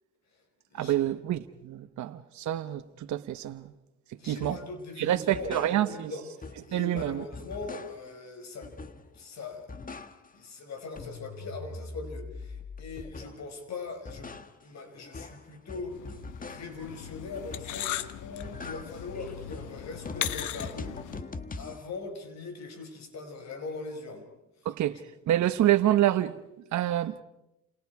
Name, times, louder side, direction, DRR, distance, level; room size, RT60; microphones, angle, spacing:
voice 1, 0.7-3.7 4.2-4.6 5.0-6.1 6.7-7.2 24.6-25.0 25.3-26.4 26.7-27.2, right 12 dB, 70° right, 1.0 m, -27 dB
voice 2, 4.2-8.8 9.1-9.7 10.3-14.3 14.6-21.3 21.6-24.3 24.9-25.0, left 3 dB, 60° left, 5.3 m, -41 dB
sound 1, 4.4-4.7 5.1-6.1 6.4-8.2 8.6-9.2 9.5-10.5 10.8-13.5 13.9-16.9 17.3-17.9 18.2-21.9, left 3 dB, 30° left, 1.4 m, -43 dB
sound 2, 15.9-21.2, left 12 dB, 85° left, 1.0 m, -38 dB
29.5 x 28.5 x 4.8 m
cardioid pair, 90°, 30 cm